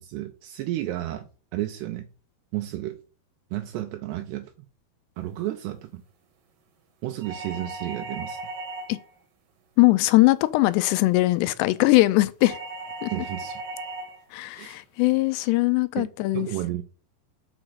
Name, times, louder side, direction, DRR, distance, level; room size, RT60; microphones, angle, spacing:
voice 1, 0.0-2.1 2.5-3.0 3.5-4.5 5.2-6.0 7.0-8.4 13.1-13.6 14.6-14.8 16.0-16.1 16.3-16.8, right 14 dB, 80° right, 2.6 m, -32 dB
sound 1, 7.2-9.1 12.4-14.2, right 2 dB, 65° right, 2.6 m, -37 dB
voice 2, 9.8-12.6 13.0-13.1 14.3-16.5, left 20 dB, 85° left, 2.6 m, -21 dB
6.3 x 4.9 x 6.1 m
omnidirectional pair, 5.0 m